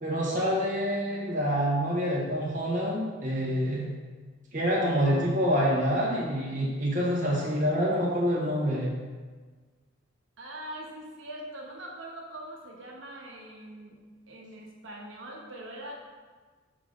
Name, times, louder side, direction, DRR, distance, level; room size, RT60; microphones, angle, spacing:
voice 1, 0.0-3.9 4.5-8.9, equal, 40° right, -5 dB, 1.2 m, -27 dB
voice 2, 10.4-14.0 14.3-15.9, right 1 dB, 70° right, -2 dB, 1.3 m, -42 dB
6.9 x 4.9 x 3.9 m, 1.4 s
head